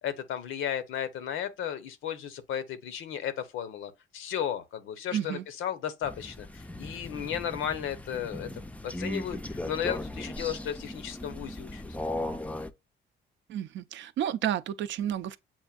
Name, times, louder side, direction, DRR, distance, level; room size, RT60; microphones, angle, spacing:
voice 1, 0.0-8.5 8.8-11.8, left 9 dB, 85° left, 0.7 m, -34 dB
voice 2, 5.1-5.4 13.5-15.4, right 10 dB, 70° right, 0.4 m, -31 dB
Crow, 6.0-12.7, left 1 dB, 5° left, 0.4 m, -37 dB
7.1 x 2.6 x 2.3 m
cardioid pair, 90°, 20 cm